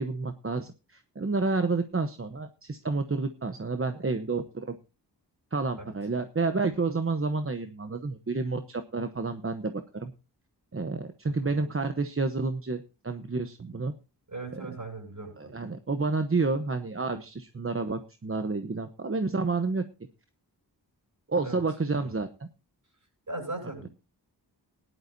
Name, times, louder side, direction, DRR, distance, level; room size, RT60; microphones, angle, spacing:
voice 1, 0.0-4.8 5.5-10.1 10.7-13.9 14.5-14.7 15.4-19.8 21.3-22.5, right 3 dB, 35° right, 8 dB, 0.9 m, -30 dB
voice 2, 14.3-15.5 21.4-21.6 22.0-22.1 23.3-23.9, right 2 dB, 50° right, 3 dB, 7.8 m, -38 dB
18.0 x 11.0 x 2.6 m, 0.29 s
wide cardioid pair, 70°, 40 cm